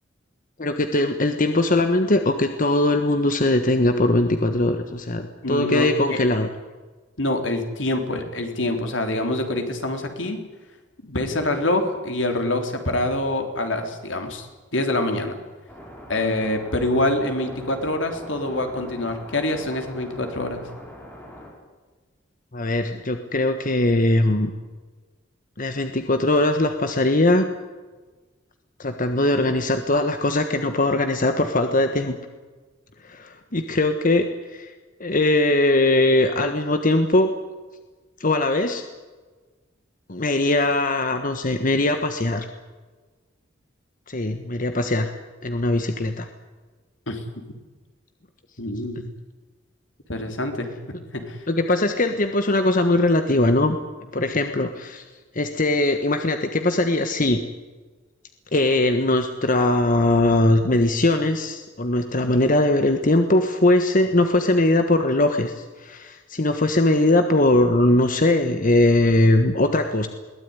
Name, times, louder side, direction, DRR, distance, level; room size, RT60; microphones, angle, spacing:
voice 1, 0.6-6.5 22.5-24.5 25.6-27.5 28.8-32.2 33.0-34.3 34.5-34.7 35.0-37.3 38.2-38.8 40.1-42.4 44.1-45.1 45.4-46.3 51.5-53.8 54.1-55.0 55.3-57.4 58.5-70.1, left 2 dB, 45° left, 7 dB, 1.4 m, -20 dB
voice 2, 5.4-6.2 7.2-10.4 11.0-14.5 14.7-15.4 16.1-20.7 47.1-47.2 48.6-49.1 50.1-51.4, left 1 dB, 80° left, 5 dB, 3.7 m, -25 dB
sound 1, 15.7-21.5, equal, 10° left, 6.8 m, -42 dB
22.0 x 18.0 x 9.8 m, 1.3 s
head